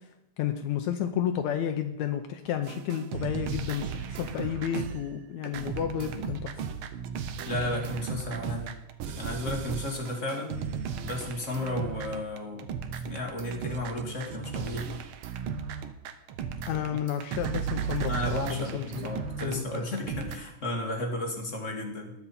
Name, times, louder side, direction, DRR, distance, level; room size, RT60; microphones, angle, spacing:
voice 1, 0.4-6.5 16.7-19.1 19.4-19.9, left 9 dB, 75° left, 6 dB, 2.0 m, -31 dB
sound 1, 2.7-20.4, right 7 dB, 85° right, 1.1 m, -35 dB
voice 2, 7.5-8.7 9.2-10.6 11.0-12.7 13.1-15.0 18.1-22.1, left 1 dB, 30° left, 2 dB, 1.8 m, -33 dB
20.5 x 7.1 x 4.2 m, 0.90 s
omnidirectional pair, 3.5 m